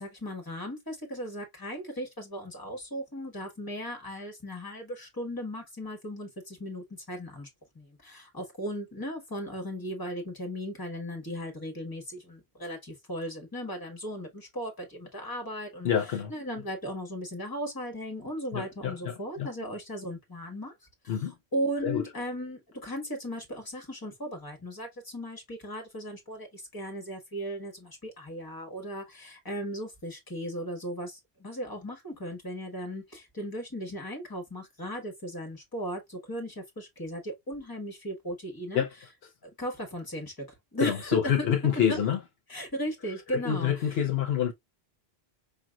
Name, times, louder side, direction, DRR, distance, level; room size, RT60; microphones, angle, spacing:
voice 1, 0.0-7.5 7.7-20.7 21.0-21.3 21.5-38.9 39.4-41.5 41.9-42.0 42.5-44.0, equal, 20° left, 1.4 m, -37 dB
voice 2, 15.8-16.3 18.5-19.5 21.1-21.3 21.8-22.0 38.7-38.9 40.8-42.2 43.3-44.5, left 9 dB, 70° left, 0.9 m, -27 dB
5.1 x 2.9 x 2.3 m
omnidirectional pair, 1.1 m